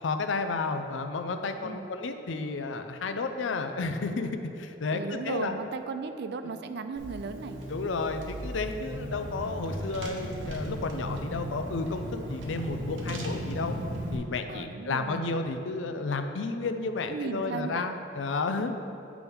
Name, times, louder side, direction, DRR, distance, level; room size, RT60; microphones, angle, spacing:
voice 1, 0.0-4.3 4.6-5.5 6.4-6.5 7.7-13.7 14.1-18.7, left 3 dB, 85° left, 7 dB, 0.5 m, -32 dB
voice 2, 4.9-7.6 14.5-15.3 17.0-17.9, right 4 dB, 60° right, 9 dB, 0.4 m, -36 dB
Car / Engine, 7.0-14.2, equal, 85° right, 0.9 m, -36 dB
8.5 x 6.1 x 3.5 m, 3.0 s
head